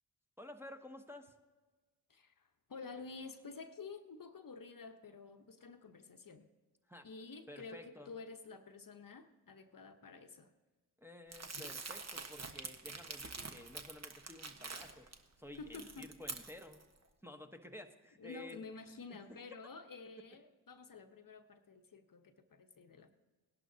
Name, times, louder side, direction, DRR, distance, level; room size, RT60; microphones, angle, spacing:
voice 1, 0.4-1.3 6.9-7.1 7.5-8.1 11.0-15.1 15.4-16.8 17.2-18.6, left 1 dB, 5° right, 3 dB, 1.0 m, -52 dB
voice 2, 2.1-6.5 7.0-10.5 11.5-11.7 15.6-16.1 18.2-23.1, left 4 dB, 45° left, 7 dB, 0.9 m, -50 dB
Crumpling crinkling, 11.3-15.1 15.6-16.8, right 4 dB, 35° right, 1.3 m, -46 dB
18.5 x 11.0 x 2.8 m, 1.3 s
supercardioid pair, 40°, 48 cm